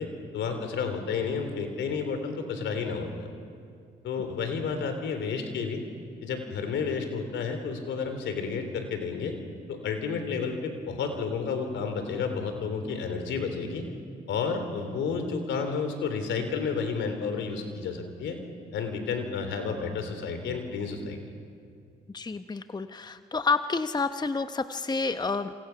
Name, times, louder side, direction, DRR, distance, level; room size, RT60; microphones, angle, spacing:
voice 1, 0.0-3.3 4.0-5.8 6.2-9.4 9.7-13.9 14.3-18.4 18.7-21.2, left 5 dB, 75° left, 7 dB, 3.5 m, -31 dB
voice 2, 22.1-25.5, left 4 dB, 20° left, 10 dB, 0.9 m, -29 dB
27.5 x 27.5 x 5.9 m, 2.3 s
supercardioid pair, 55°, 19 cm